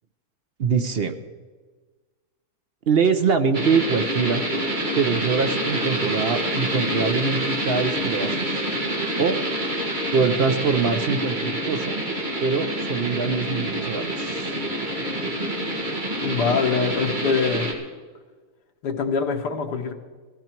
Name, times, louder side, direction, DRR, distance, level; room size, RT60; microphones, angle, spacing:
voice 1, 0.6-1.2 2.9-4.4 4.9-8.6 9.2-9.4 10.1-12.0 12.4-14.6, right 5 dB, 55° right, 8 dB, 0.7 m, -23 dB
sound 1, 3.5-17.7, right 1 dB, 30° right, 2.1 m, -27 dB
voice 2, 16.2-17.7 18.8-19.9, left 5 dB, 80° left, 3 dB, 1.9 m, -24 dB
16.5 x 14.5 x 4.5 m, 1.4 s
omnidirectional pair, 1.7 m